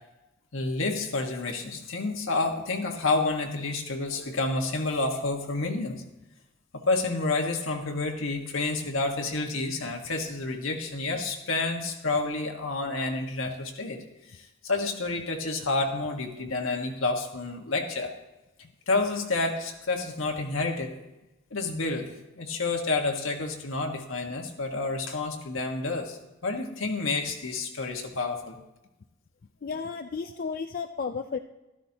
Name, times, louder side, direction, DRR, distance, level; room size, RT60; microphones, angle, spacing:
voice 1, 0.5-6.0 6.9-18.1 18.9-21.0 21.5-28.6, left 3 dB, 75° left, 2 dB, 1.5 m, -29 dB
voice 2, 29.6-31.4, left 5 dB, 45° left, 7 dB, 0.4 m, -33 dB
12.5 x 12.5 x 2.9 m, 1.0 s
head